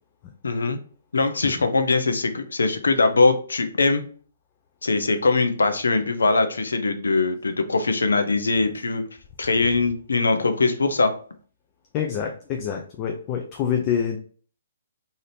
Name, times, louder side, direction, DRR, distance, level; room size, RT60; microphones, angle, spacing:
voice 1, 0.4-0.8 1.1-4.0 4.8-9.0 9.4-11.1, left 3 dB, 85° left, 8 dB, 0.5 m, -21 dB
voice 2, 11.9-14.2, left 8 dB, 30° left, 2 dB, 0.4 m, -26 dB
2.7 x 2.5 x 3.3 m, 0.43 s
hypercardioid pair, 145°, 0 cm